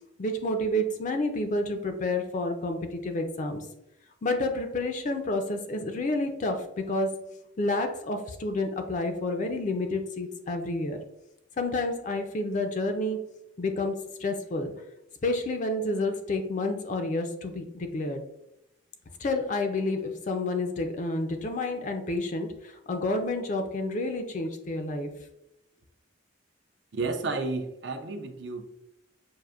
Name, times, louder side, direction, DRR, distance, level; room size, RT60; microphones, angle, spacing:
voice 1, 0.2-3.6 4.2-7.3 7.6-11.0 11.6-13.3 13.6-14.7 15.2-18.2 19.2-25.1, left 2 dB, 40° left, 6 dB, 0.4 m, -29 dB
voice 2, 26.9-28.6, right 3 dB, 65° right, 7 dB, 0.5 m, -31 dB
6.3 x 2.5 x 2.4 m, 0.84 s
head